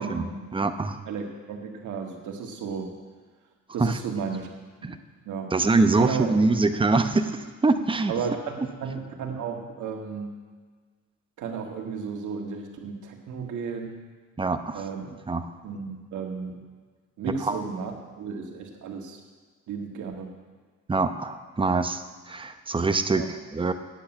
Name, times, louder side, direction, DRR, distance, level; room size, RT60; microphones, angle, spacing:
voice 1, 0.0-0.4 1.1-2.9 3.7-4.5 4.8-4.9 5.3-5.6 5.9-6.3 8.1-10.4 11.4-14.0 14.7-15.0 15.6-16.6 17.2-19.2 19.7-20.3 23.1-23.3, right 6 dB, 75° right, 2 dB, 1.8 m, -33 dB
voice 2, 0.5-1.0 3.8-4.0 4.8-5.0 5.5-7.3 7.6-8.1 14.4-14.8 15.3-15.5 17.4-17.6 20.9-23.7, right 3 dB, 15° right, 8 dB, 0.8 m, -24 dB
9.1 x 7.9 x 8.9 m, 1.4 s
cardioid pair, 90°, 30 cm